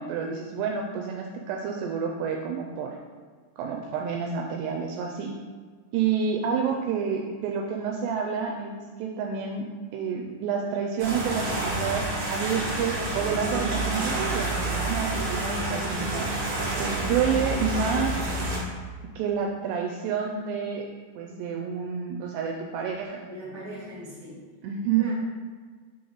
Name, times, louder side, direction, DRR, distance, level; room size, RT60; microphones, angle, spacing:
voice 1, 0.0-3.0 3.6-5.3 5.9-9.7 9.9-16.4 16.8-18.3 19.2-20.8 21.2-23.2 24.6-25.1, right 6 dB, 85° right, 1 dB, 2.4 m, -29 dB
sound 1, 11.0-18.6, right 2 dB, 70° right, 1.2 m, -29 dB
voice 2, 23.2-24.4 24.9-25.1, equal, 75° left, -11 dB, 0.7 m, -40 dB
8.4 x 3.6 x 3.9 m, 1.5 s
omnidirectional pair, 5.2 m